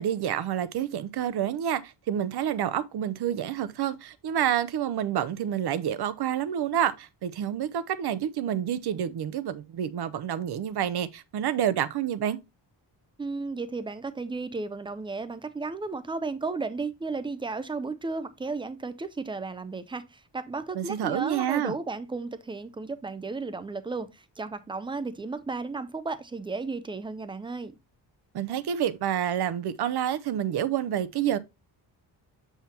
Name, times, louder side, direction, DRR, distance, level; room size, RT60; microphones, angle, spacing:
voice 1, 0.0-12.4 20.7-21.7 28.3-31.4, right 10 dB, 60° right, 0.6 m, -28 dB
voice 2, 13.2-27.8, right 3 dB, 15° right, 0.3 m, -34 dB
7.1 x 5.7 x 2.8 m
wide cardioid pair, 180°, 44 cm